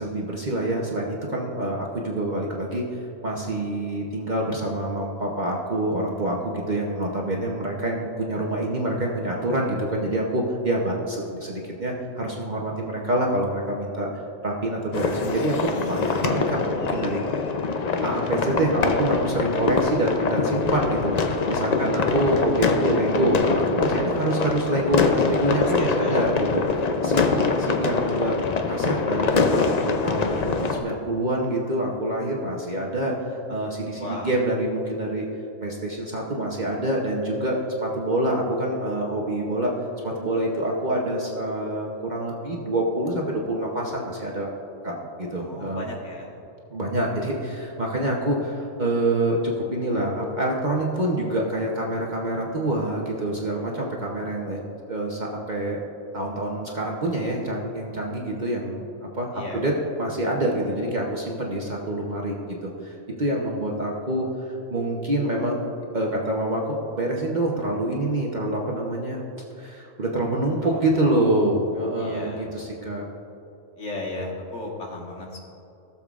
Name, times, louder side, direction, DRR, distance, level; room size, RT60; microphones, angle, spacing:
voice 1, 0.0-2.8 3.2-14.1 14.4-17.2 18.0-28.4 28.7-35.2 35.6-39.7 40.0-44.5 44.8-45.9 46.7-54.6 54.9-55.8 56.1-58.9 59.2-59.7 60.0-64.3 64.7-65.6 65.9-69.2 69.6-73.0, right 1 dB, 40° right, -2 dB, 0.9 m, -26 dB
sound 1, 14.9-30.8, left 4 dB, 50° left, 0.5 m, -24 dB
voice 2, 21.7-22.3 25.5-26.2 34.0-34.3 45.4-46.4 59.3-59.6 70.6-71.2 71.9-72.6 73.8-75.4, left 2 dB, 65° left, -2 dB, 1.7 m, -35 dB
16.0 x 7.2 x 2.4 m, 2.9 s
omnidirectional pair, 1.3 m